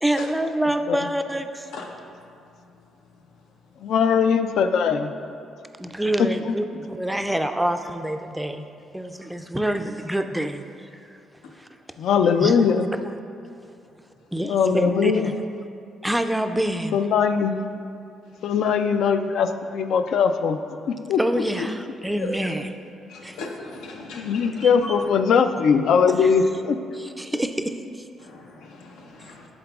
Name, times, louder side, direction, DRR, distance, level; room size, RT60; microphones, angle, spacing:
voice 1, 0.0-1.7 5.8-8.6 8.9-11.2 11.5-11.7 12.4-12.7 14.3-15.4 16.0-17.0 21.2-22.7 23.2-23.4 24.6-25.0 26.1-26.3 26.9-28.1, right 1 dB, 5° right, 7 dB, 0.3 m, -27 dB
voice 2, 3.8-5.1 6.5-6.6 12.0-12.9 14.4-15.4 16.9-17.6 18.4-20.6 20.9-21.2 24.1-26.8 27.3-27.4, left 6 dB, 70° left, 9 dB, 0.3 m, -20 dB
voice 3, 23.1-24.9 28.2-29.5, left 3 dB, 90° left, 1 dB, 0.7 m, -39 dB
11.0 x 3.9 x 2.4 m, 2.5 s
cardioid pair, 95°, 0 cm